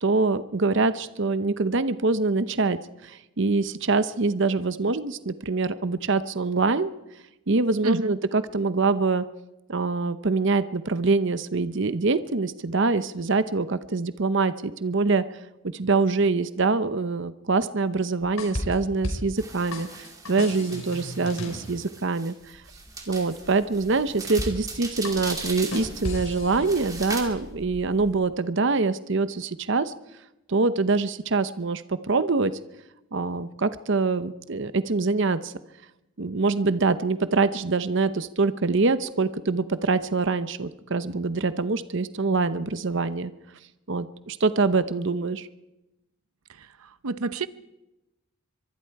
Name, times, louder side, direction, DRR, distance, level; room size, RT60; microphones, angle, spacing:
voice 1, 0.0-6.9 7.5-9.2 9.7-15.2 15.7-22.3 23.1-29.9 30.5-32.5 33.1-35.5 36.2-43.3 43.9-45.5, right 3 dB, 60° right, 13 dB, 0.8 m, -24 dB
voice 2, 7.8-8.2 46.5-47.5, right 3 dB, 90° right, 14 dB, 0.8 m, -30 dB
sound 1, 18.2-19.4 19.7-21.7 24.4-24.8 25.0-27.1, left 1 dB, 75° left, 4.5 m, -34 dB
sound 2, 19.4-27.2, right 3 dB, 15° right, 2.7 m, -39 dB
sound 3, 22.4-28.4, equal, ahead, 1.2 m, -46 dB
24.0 x 23.0 x 4.7 m, 0.96 s
head